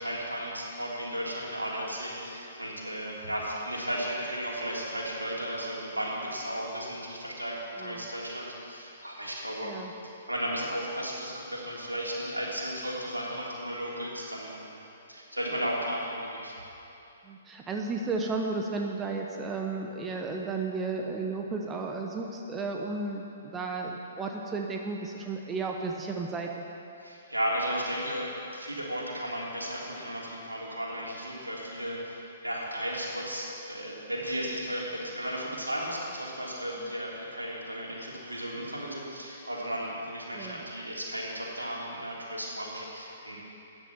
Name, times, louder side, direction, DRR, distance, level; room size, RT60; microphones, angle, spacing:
voice 1, 0.0-9.7 10.0-14.7 15.1-16.5 27.0-43.4, equal, 85° right, -4 dB, 3.3 m, -34 dB
voice 2, 17.2-26.6 40.3-40.6, right 3 dB, 15° right, 1 dB, 1.0 m, -33 dB
14.0 x 9.6 x 7.2 m, 2.8 s
figure-of-eight pair, 120°, 0 cm